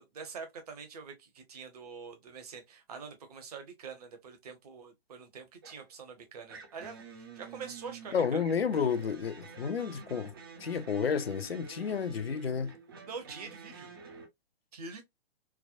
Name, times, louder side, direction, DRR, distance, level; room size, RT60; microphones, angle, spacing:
voice 1, 0.0-8.4 13.1-13.9 14.7-15.0, right 5 dB, 40° right, 0.9 m, -45 dB
sound 1, 5.6-5.9 6.5-14.3, right 5 dB, 25° right, 0.4 m, -49 dB
voice 2, 8.1-10.3 10.6-12.7, left 6 dB, 70° left, 0.5 m, -31 dB
3.3 x 2.1 x 2.5 m
figure-of-eight pair, 125°, 31 cm